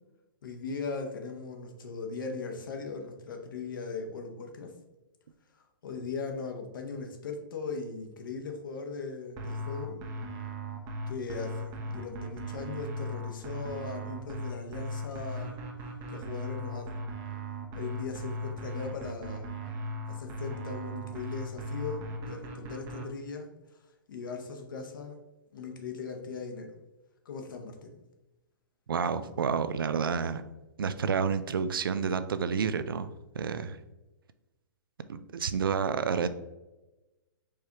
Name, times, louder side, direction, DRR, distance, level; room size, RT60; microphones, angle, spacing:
voice 1, 0.4-4.7 5.8-10.0 11.1-15.6 16.1-17.0 17.7-19.6 20.1-23.5 24.1-25.2 25.5-26.8 27.2-28.0, left 4 dB, 65° left, 3 dB, 0.9 m, -39 dB
sound 1, 9.4-23.1, equal, 30° right, 0.7 m, -37 dB
voice 2, 28.9-30.4 30.8-33.8 35.1-36.3, right 6 dB, 75° right, 12 dB, 0.4 m, -29 dB
4.7 x 3.3 x 2.9 m, 1.1 s
hypercardioid pair, 125°, 12 cm